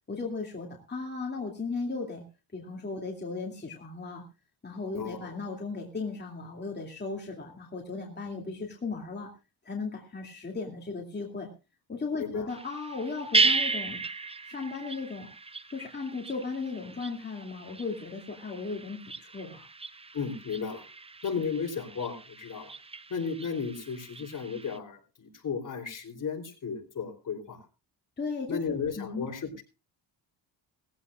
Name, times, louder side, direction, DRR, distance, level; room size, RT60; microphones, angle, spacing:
voice 1, 0.1-2.2 2.5-4.2 4.6-9.3 9.6-11.5 11.9-14.0 14.4-15.3 15.7-19.7 28.2-29.3, left 4 dB, 25° left, 0 dB, 2.5 m, -36 dB
voice 2, 5.0-5.4 12.2-12.5 20.1-20.8 21.2-22.7 23.1-27.6 28.5-29.5, left 5 dB, 45° left, 3 dB, 3.6 m, -34 dB
sound 1, 12.5-24.8, right 4 dB, 15° right, 0.6 m, -34 dB
19.0 x 15.5 x 2.4 m, 0.30 s
cardioid pair, 115°, 42 cm